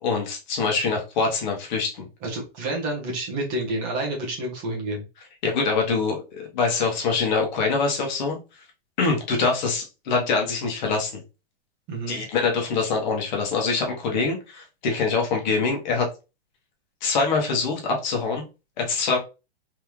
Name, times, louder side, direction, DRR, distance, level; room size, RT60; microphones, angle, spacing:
voice 1, 0.0-2.1 5.4-8.4 9.0-11.1 12.1-16.1 17.0-18.4 18.8-19.2, left 4 dB, 45° left, 1 dB, 1.3 m, -24 dB
voice 2, 2.2-5.0 11.9-12.2, right 1 dB, 25° right, -3 dB, 1.2 m, -29 dB
3.6 x 3.2 x 3.1 m, 0.29 s
supercardioid pair, 170°, 32 cm